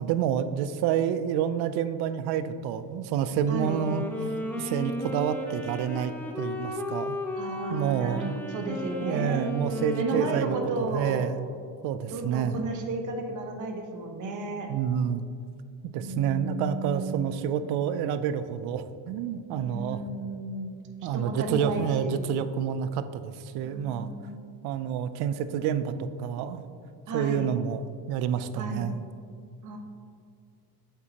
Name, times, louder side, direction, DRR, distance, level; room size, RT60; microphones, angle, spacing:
voice 1, 0.0-4.3 4.6-7.2 7.7-8.4 9.0-11.5 11.8-12.6 14.7-15.2 15.8-20.0 21.0-24.1 24.6-26.6 27.1-29.0, right 8 dB, 75° right, 12 dB, 0.5 m, -29 dB
voice 2, 3.5-3.8 7.3-9.4 9.9-11.3 12.1-14.7 15.9-17.5 19.5-20.8 21.1-22.3 23.6-24.5 27.1-27.5 28.5-28.9 29.6-29.8, right 2 dB, 50° right, 3 dB, 1.1 m, -33 dB
Wind instrument woodwind instrument, 3.6-11.2, equal, 5° left, 0.6 m, -34 dB
8.3 x 7.4 x 2.9 m, 2.3 s
cardioid pair, 125°, 38 cm